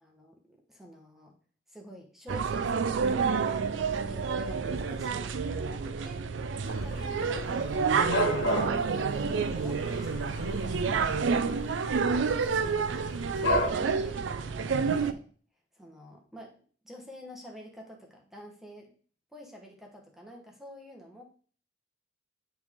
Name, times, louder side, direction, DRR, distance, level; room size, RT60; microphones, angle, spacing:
voice 1, 0.0-1.3 1.7-3.6 4.0-7.6 9.1-11.1 12.1-12.9 13.3-15.2 15.7-16.6 16.8-18.9 19.3-21.2, equal, ahead, 0 dB, 1.0 m, -48 dB
sound 1, 2.3-15.1, right 5 dB, 75° right, 0.4 m, -29 dB
Dog / Cat, 6.6-13.7, equal, 90° left, 1.5 m, -34 dB
8.8 x 3.3 x 3.5 m, 0.43 s
head